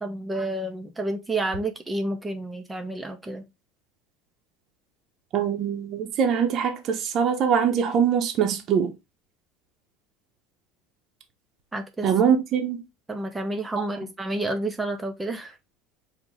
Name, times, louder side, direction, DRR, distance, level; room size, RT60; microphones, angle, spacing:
voice 1, 0.0-3.5 11.7-12.1 13.1-15.6, right 2 dB, 15° right, 0.7 m, -30 dB
voice 2, 5.3-8.9 12.0-12.8, right 7 dB, 50° right, 0.9 m, -23 dB
4.7 x 2.4 x 3.7 m
hypercardioid pair, 90°, 0 cm